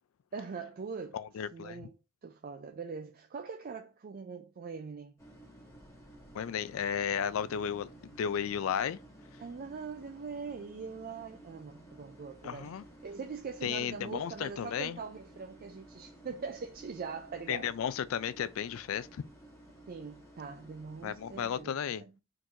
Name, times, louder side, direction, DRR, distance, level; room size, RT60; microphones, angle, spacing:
voice 1, 0.3-1.2 1.5-1.9 2.2-5.1 9.4-12.7 13.0-17.7 19.9-22.1, right 5 dB, 45° right, 0.4 m, -42 dB
voice 2, 1.1-1.9 6.3-9.0 12.4-12.8 13.6-15.0 17.5-19.2 21.0-22.0, left 8 dB, 75° left, 0.3 m, -34 dB
sound 1, 5.2-21.6, right 1 dB, 15° left, 1.2 m, -54 dB
3.8 x 2.6 x 4.4 m
head